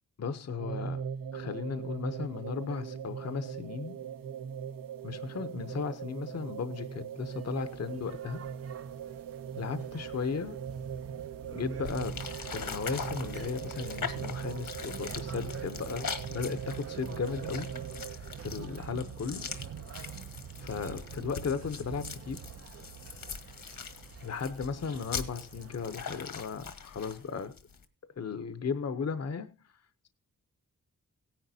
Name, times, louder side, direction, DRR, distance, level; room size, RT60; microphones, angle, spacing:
voice 1, 0.2-1.0 1.3-4.0 5.0-8.4 9.6-10.6 11.5-17.7 18.1-19.5 20.6-22.4 24.2-27.5 28.2-29.5, left 5 dB, 50° left, 0.8 m, -36 dB
sound 1, 0.6-18.2, right 7 dB, 75° right, 0.8 m, -40 dB
sound 2, 7.3-26.4, right 8 dB, 45° right, 0.5 m, -46 dB
sound 3, 11.8-27.8, left 6 dB, 80° left, 1.5 m, -42 dB
17.5 x 10.0 x 2.7 m
wide cardioid pair, 160°, 33 cm